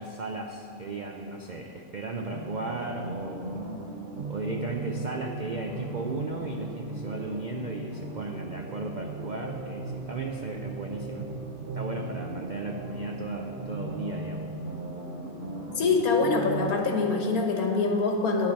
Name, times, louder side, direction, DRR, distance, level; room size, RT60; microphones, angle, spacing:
voice 1, 0.0-3.7 4.3-11.3 11.7-14.4, right 2 dB, 65° right, 2 dB, 0.4 m, -35 dB
sound 1, 2.3-16.7, right 2 dB, 35° right, 1.1 m, -37 dB
voice 2, 15.8-18.5, left 4 dB, 80° left, 2 dB, 1.6 m, -24 dB
10.5 x 8.5 x 5.3 m, 2.7 s
omnidirectional pair, 1.5 m